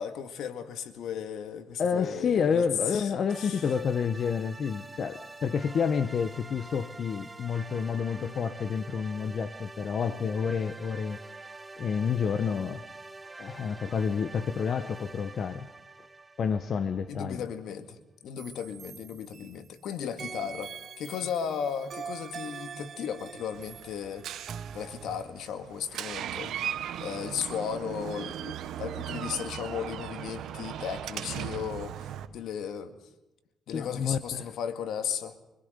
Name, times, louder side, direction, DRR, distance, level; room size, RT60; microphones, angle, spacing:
voice 1, 0.0-3.6 17.1-18.0 18.2-24.3 24.7-26.5 27.0-32.0 32.3-33.0 33.7-35.4, left 8 dB, 80° left, 2.1 m, -35 dB
voice 2, 1.8-11.2 11.8-12.8 13.4-15.7 16.4-17.5 33.7-34.5, left 6 dB, 55° left, 1.0 m, -29 dB
sound 1, 3.3-17.5, right 3 dB, 15° right, 0.9 m, -46 dB
sound 2, 18.4-19.8 20.2-25.2, right 6 dB, 50° right, 0.6 m, -43 dB
Door, 23.5-32.3, right 10 dB, 80° right, 1.2 m, -38 dB
25.0 x 21.5 x 5.3 m
cardioid pair, 90°, 0 cm